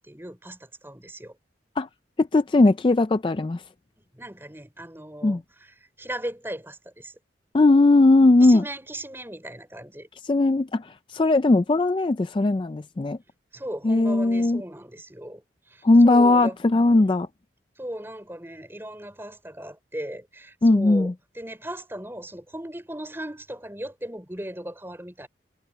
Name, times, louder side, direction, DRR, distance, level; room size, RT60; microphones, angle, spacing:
voice 1, 0.0-1.4 4.1-7.1 8.4-10.1 13.5-16.6 16.9-17.2 17.8-25.3, right 1 dB, 10° right, 3.8 m, -37 dB
voice 2, 2.2-3.6 5.2-5.4 7.5-8.6 10.2-13.2 13.8-14.6 15.8-17.3 20.6-21.1, left 2 dB, 25° left, 0.3 m, -18 dB
head